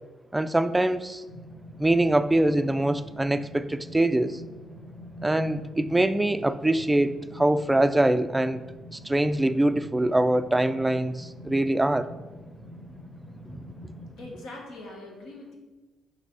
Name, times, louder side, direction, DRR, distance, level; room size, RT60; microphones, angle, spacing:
voice 1, 0.3-1.2 1.8-4.4 5.2-8.6 8.9-12.1 13.5-13.6, right 1 dB, 10° right, 12 dB, 0.3 m, -24 dB
sound 1, 1.3-14.3, equal, 65° left, 1.4 m, -45 dB
voice 2, 14.2-15.6, left 2 dB, 90° left, -1 dB, 1.4 m, -42 dB
5.3 x 4.1 x 4.7 m, 1.2 s
cardioid pair, 90°, 0 cm